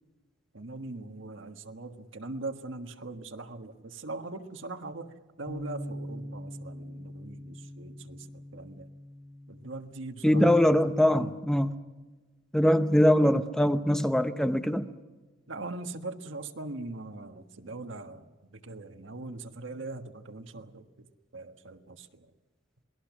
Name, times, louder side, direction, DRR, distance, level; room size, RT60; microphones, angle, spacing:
voice 1, 0.5-8.9 9.5-10.8 11.1-11.3 15.5-21.1 21.3-22.3, right 2 dB, 80° right, 6 dB, 1.5 m, -41 dB
Bass guitar, 5.5-11.7, equal, 80° left, 4.9 m, -44 dB
voice 2, 10.2-11.7 12.5-14.9, equal, 5° left, 9 dB, 0.8 m, -22 dB
27.5 x 20.5 x 6.1 m, 1.2 s
head